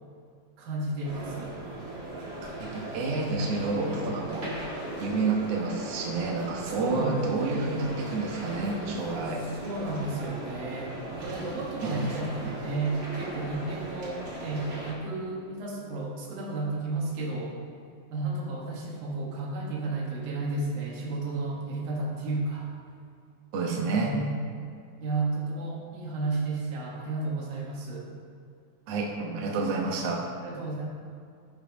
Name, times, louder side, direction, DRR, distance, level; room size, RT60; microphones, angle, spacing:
voice 1, 0.6-1.6 6.7-7.4 9.4-17.6 18.1-22.7 23.7-24.4 25.0-28.1 30.4-30.9, right 2 dB, 80° right, -2 dB, 3.3 m, -33 dB
sound 1, 1.0-14.9, right 2 dB, 40° right, 2.1 m, -38 dB
voice 2, 2.5-4.5 5.0-9.4 11.8-12.1 12.4-12.6 23.5-24.2 28.9-30.2, right 3 dB, 60° right, -2 dB, 1.8 m, -29 dB
12.0 x 5.7 x 5.2 m, 2.3 s
omnidirectional pair, 4.1 m